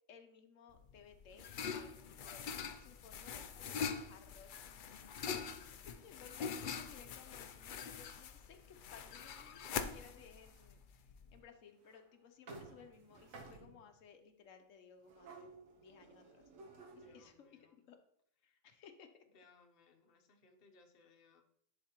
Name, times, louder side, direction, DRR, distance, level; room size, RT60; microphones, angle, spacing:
voice 1, 0.1-2.5 2.8-4.5 5.2-10.8 11.3-15.5 15.8-16.4 16.9-18.0 18.4-19.1, left 7 dB, 85° left, 6 dB, 1.1 m, -59 dB
sound 1, 0.8-11.3, left 6 dB, 65° left, 0.5 m, -44 dB
sound 2, 9.2-10.6 11.4-11.5 11.9-12.0 12.5-14.0 15.0-17.3, right 3 dB, 85° right, 1.4 m, -56 dB
voice 2, 17.0-17.8 18.4-18.6 19.3-21.4, left 4 dB, 50° left, 4 dB, 1.0 m, -66 dB
10.5 x 3.9 x 2.9 m, 0.66 s
omnidirectional pair, 1.3 m